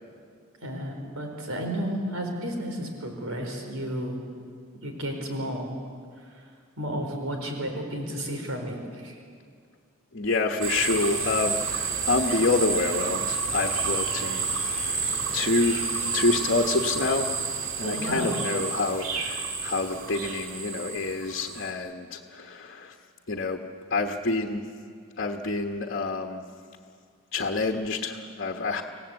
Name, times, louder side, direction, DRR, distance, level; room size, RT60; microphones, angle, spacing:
voice 1, 0.6-4.2 4.8-5.7 6.3-6.4 6.8-9.2 17.8-18.3, equal, 85° right, 2 dB, 4.4 m, -32 dB
voice 2, 10.1-14.9 15.3-15.9 16.1-17.3 17.8-23.0 23.3-23.6 23.9-24.7 25.2-26.5 27.3-28.8, left 3 dB, 50° left, 3 dB, 1.2 m, -27 dB
sound 1, 10.6-21.7, right 4 dB, 65° right, 2.6 m, -30 dB
27.0 x 17.5 x 8.2 m, 2.2 s
head